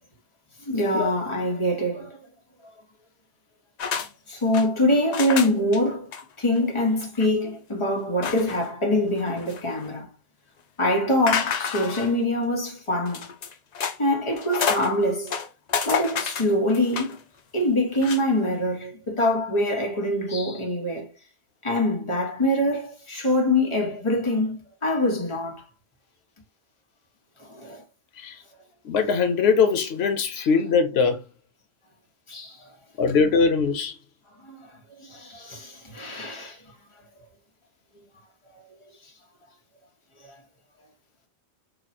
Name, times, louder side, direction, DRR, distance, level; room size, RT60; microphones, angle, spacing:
voice 1, 0.6-2.2 4.0-6.1 6.4-10.1 10.8-13.3 14.0-15.3 15.8-17.2 17.5-21.1 21.6-25.6 27.4-27.8 30.4-30.5 32.3-32.7 34.4-34.7 35.0-36.6 40.2-40.4, left 1 dB, 30° left, 1.2 m, -24 dB
sound 1, 3.8-4.1 4.3-4.7 5.1-5.8 6.1-6.2 6.6-6.7 7.0-7.3 8.2-8.7 9.2-9.9 11.3-12.2 13.1-14.0 14.3-14.9 15.3-17.2 17.9-18.2, left 6 dB, 50° left, 0.6 m, -29 dB
voice 2, 28.8-31.2 33.0-34.0, left 5 dB, 90° left, 0.9 m, -21 dB
3.1 x 2.3 x 4.1 m
omnidirectional pair, 1.0 m